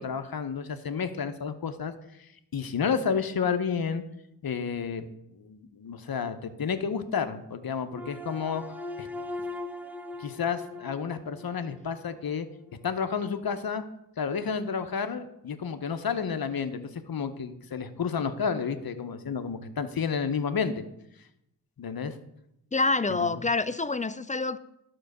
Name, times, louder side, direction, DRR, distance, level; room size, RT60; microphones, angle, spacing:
voice 1, 0.0-1.9 2.2-4.0 4.4-5.1 5.4-8.6 9.0-9.1 10.2-12.5 12.8-13.8 14.2-20.8 21.8-22.2 23.1-23.2, left 6 dB, 55° left, 0.9 m, -31 dB
sound 1, 7.9-12.2, left 2 dB, 5° right, 0.7 m, -40 dB
voice 2, 22.7-24.6, left 3 dB, 20° left, 0.4 m, -27 dB
11.5 x 4.0 x 6.6 m
cardioid pair, 60°, 44 cm